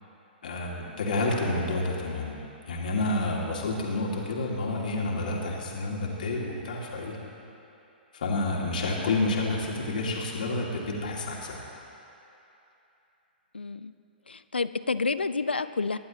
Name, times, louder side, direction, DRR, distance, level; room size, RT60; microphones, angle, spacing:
voice 1, 0.4-7.2 8.1-11.6, left 2 dB, 55° left, -3 dB, 2.5 m, -29 dB
voice 2, 13.5-13.9 14.3-16.0, left 4 dB, 75° left, 14 dB, 0.4 m, -29 dB
25.0 x 11.0 x 3.0 m, 2.9 s
figure-of-eight pair, 115°, 6 cm